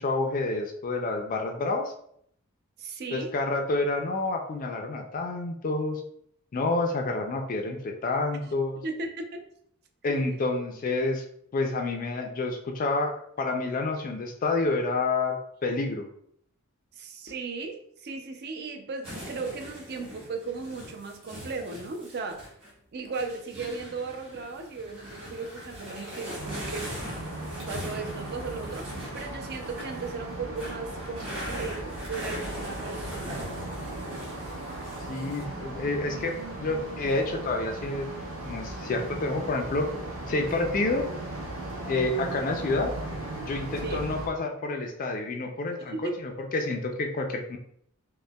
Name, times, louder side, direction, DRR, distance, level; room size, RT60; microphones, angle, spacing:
voice 1, 0.0-1.9 3.1-6.0 6.5-8.8 10.0-11.2 11.5-15.4 15.6-16.0 35.1-38.1 38.4-39.9 40.3-41.1 41.9-43.0 43.4-47.6, left 2 dB, 35° left, 3 dB, 0.3 m, -29 dB
voice 2, 2.8-3.3 8.8-9.5 10.1-10.5 16.9-22.5 22.9-26.9 27.7-28.9 29.1-33.4 43.8-44.0 45.9-46.1, right 4 dB, 45° right, 5 dB, 0.4 m, -36 dB
sound 1, 19.0-22.7 23.1-30.1 30.5-35.4, equal, 25° right, 1.2 m, -41 dB
sound 2, 26.4-44.3, right 2 dB, 60° right, 0.8 m, -37 dB
5.2 x 2.1 x 2.2 m, 0.69 s
head